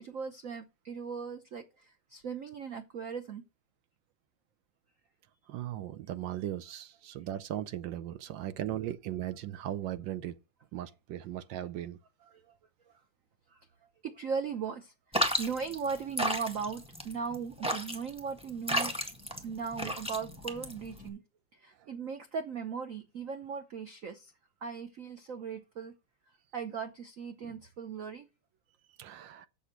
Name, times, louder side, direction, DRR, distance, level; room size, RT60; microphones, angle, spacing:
voice 1, 0.0-3.4 12.3-12.5 13.5-13.6 14.0-18.9 19.4-21.2 21.6-24.3 24.6-25.9 26.5-28.3, right 6 dB, 55° right, 1.0 m, -38 dB
voice 2, 5.5-10.4 10.7-12.0 21.8-21.9 29.0-29.5, right 12 dB, 70° right, 1.2 m, -38 dB
sound 1, 15.1-21.1, equal, 5° right, 1.3 m, -33 dB
7.2 x 7.1 x 5.8 m
omnidirectional pair, 2.3 m